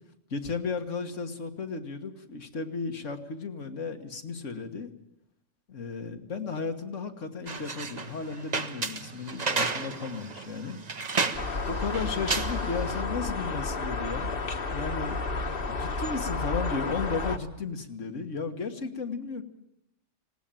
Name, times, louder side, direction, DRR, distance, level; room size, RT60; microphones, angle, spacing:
voice 1, 0.3-4.9 5.7-10.8 11.7-15.2 15.7-19.4, left 4 dB, 80° left, 6 dB, 1.9 m, -34 dB
sound 1, 7.5-13.0, right 4 dB, 35° right, 1.0 m, -33 dB
sound 2, 11.3-17.4, left 3 dB, 50° left, 1.4 m, -31 dB
19.5 x 17.5 x 9.0 m, 0.81 s
omnidirectional pair, 1.3 m